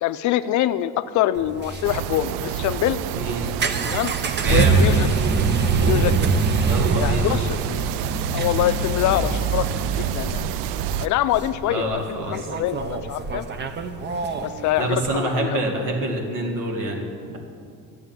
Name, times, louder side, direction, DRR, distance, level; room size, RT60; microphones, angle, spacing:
voice 1, 0.0-3.0 3.8-4.1 4.5-5.1 5.8-6.3 7.0-7.8 8.3-9.7 10.0-10.4 11.0-13.5 14.4-15.6, left 13 dB, 60° left, 13 dB, 0.5 m, -24 dB
sound 1, 1.4-15.2, right 4 dB, 30° right, 0.7 m, -24 dB
sound 2, 1.8-11.1, right 12 dB, 90° right, 0.5 m, -29 dB
voice 2, 3.1-3.5 4.4-4.9 6.6-7.4 11.7-12.5 14.8-17.4, right 2 dB, 65° right, 2 dB, 2.1 m, -27 dB
11.5 x 7.7 x 7.5 m, 2.3 s
cardioid pair, 145°, 34 cm